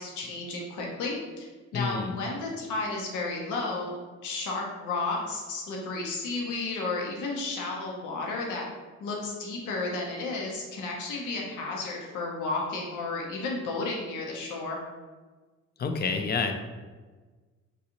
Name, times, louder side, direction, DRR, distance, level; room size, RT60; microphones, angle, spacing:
voice 1, 0.0-8.7 9.0-14.8, left 3 dB, 80° left, -1 dB, 0.7 m, -33 dB
voice 2, 1.7-2.2 15.8-16.5, left 4 dB, 35° left, 6 dB, 0.4 m, -28 dB
3.9 x 2.4 x 2.9 m, 1.3 s
cardioid pair, 90°, 30 cm